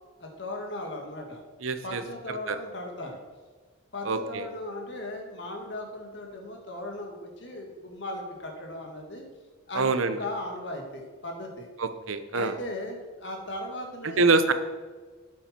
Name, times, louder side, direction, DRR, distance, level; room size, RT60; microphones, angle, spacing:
voice 1, 0.2-1.4 1.8-3.2 3.9-9.3 9.7-11.7 12.3-14.4, left 1 dB, 60° left, 1 dB, 2.0 m, -37 dB
voice 2, 1.6-2.0 2.5-2.6 4.0-4.5 9.7-10.2 11.8-12.5 14.2-14.5, right 3 dB, 85° right, 10 dB, 0.8 m, -25 dB
8.8 x 8.4 x 4.4 m, 1.4 s
head